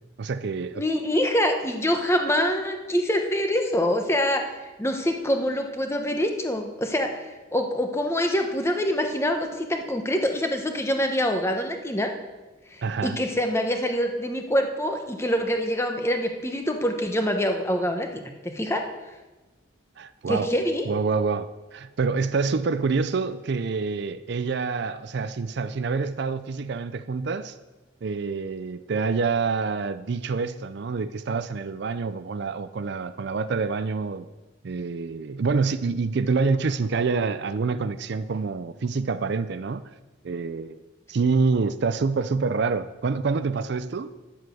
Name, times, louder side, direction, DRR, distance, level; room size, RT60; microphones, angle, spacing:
voice 1, 0.2-0.9 12.8-13.2 20.0-20.5 20.9-27.6 28.0-34.3 34.6-39.8 40.2-40.8 41.1-44.1, right 4 dB, 55° right, 0.4 m, -27 dB
voice 2, 0.8-7.2 7.5-12.1 12.7-18.8 20.3-20.9, equal, 15° left, 1.0 m, -25 dB
10.5 x 7.6 x 7.7 m
head